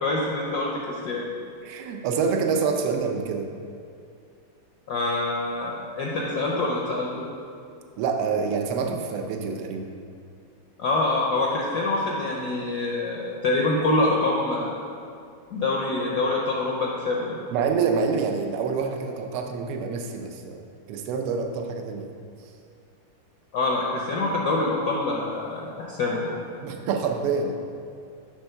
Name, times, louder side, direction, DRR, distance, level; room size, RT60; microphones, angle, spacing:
voice 1, 0.0-1.3 4.9-7.3 10.8-14.8 15.5-17.4 23.5-26.4, left 2 dB, 70° left, -2 dB, 0.9 m, -25 dB
voice 2, 1.7-3.5 8.0-9.9 17.5-22.1 26.6-27.6, right 5 dB, 85° right, 4 dB, 1.6 m, -27 dB
6.7 x 3.5 x 5.6 m, 2.4 s
omnidirectional pair, 2.4 m